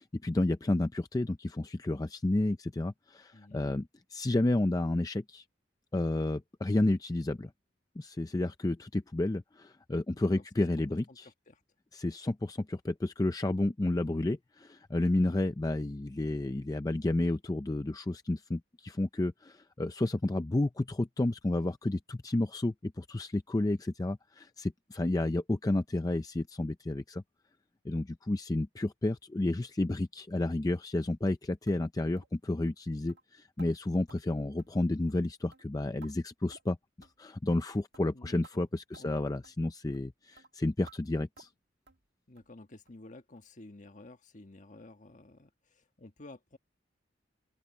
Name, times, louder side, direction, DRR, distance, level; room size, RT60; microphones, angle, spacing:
voice 1, 0.0-5.4 5.9-7.5 8.0-11.3 11.9-27.2 27.8-41.5, left 2 dB, 20° left, 0.4 m, -31 dB
voice 2, 3.3-3.6 10.1-10.4 10.9-11.2 11.5-11.6 38.1-38.7 39.0-39.2 42.3-46.6, left 2 dB, 40° left, 1.4 m, -52 dB
sound 1, 31.7-31.8 32.2-32.3 32.7-32.8 33.1-33.2 33.6-33.7 34.1-34.2 34.6-34.8 35.1-35.2 35.5-36.1 36.5-36.7 37.0-37.2 37.5-37.7 37.9-38.1 38.4-38.6 38.9-39.1 39.4-39.6 39.9-40.1 40.4-40.5 40.9-41.0 41.4-41.6 41.9-42.0 42.4-42.5 42.9-43.0 43.4-43.5 43.9-44.0, right 3 dB, 65° right, 1.5 m, -56 dB
open air
head